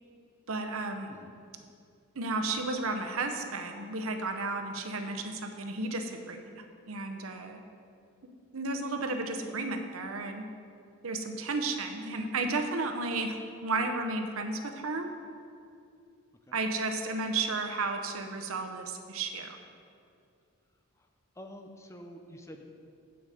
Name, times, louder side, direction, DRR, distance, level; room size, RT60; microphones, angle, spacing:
voice 1, 0.5-1.1 2.1-7.6 8.5-10.5 11.0-15.1 16.5-19.6, right 3 dB, 75° right, 6 dB, 0.8 m, -33 dB
voice 2, 21.3-22.6, equal, 15° left, 4 dB, 0.6 m, -47 dB
8.0 x 7.9 x 5.0 m, 2.4 s
head